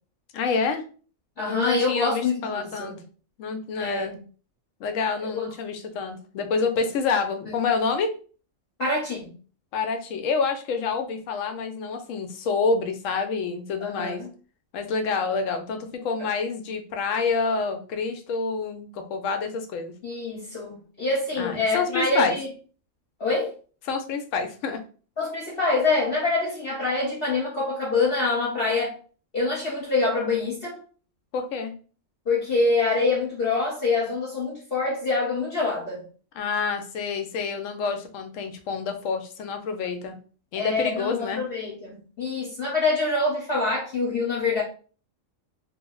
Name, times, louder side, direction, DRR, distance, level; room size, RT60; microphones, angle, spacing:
voice 1, 0.3-0.8 1.4-3.0 3.4-4.2 4.8-8.1 9.7-14.2 14.7-19.9 21.4-22.4 23.9-24.8 31.3-31.7 36.3-40.1 40.5-41.4, left 5 dB, 80° left, 6 dB, 0.9 m, -27 dB
voice 2, 1.4-3.0 3.8-4.2 5.3-5.4 7.5-7.6 8.8-9.3 13.8-14.3 16.2-16.3 20.0-22.5 23.2-23.5 25.2-29.0 29.3-30.8 32.3-36.0 40.6-44.6, left 3 dB, 50° left, -5 dB, 1.0 m, -25 dB
2.7 x 2.0 x 3.7 m, 0.39 s
omnidirectional pair, 1.3 m